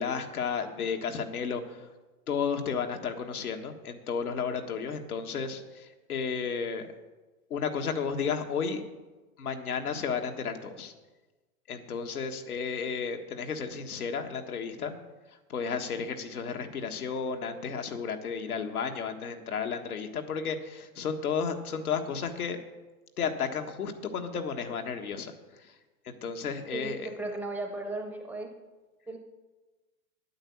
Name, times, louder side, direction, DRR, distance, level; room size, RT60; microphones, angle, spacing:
voice 1, 0.0-1.9 2.3-6.9 7.5-8.8 9.4-10.9 11.7-14.9 15.5-22.6 23.2-25.3 25.6-25.7 26.0-27.1, left 6 dB, 90° left, 5 dB, 1.6 m, -33 dB
voice 2, 26.7-28.5 29.1-29.2, right 2 dB, 5° right, 3 dB, 0.5 m, -36 dB
9.6 x 8.8 x 7.1 m, 1.2 s
hypercardioid pair, 135°, 43 cm